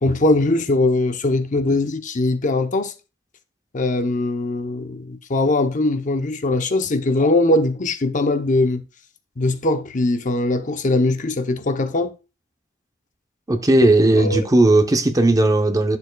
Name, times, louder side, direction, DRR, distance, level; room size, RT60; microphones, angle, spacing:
voice 1, 0.0-2.9 3.7-8.8 9.4-12.1 14.2-14.5, left 2 dB, 40° left, 0.7 m, -21 dB
voice 2, 13.5-16.0, right 2 dB, 20° right, 0.7 m, -16 dB
10.0 x 6.9 x 2.3 m
head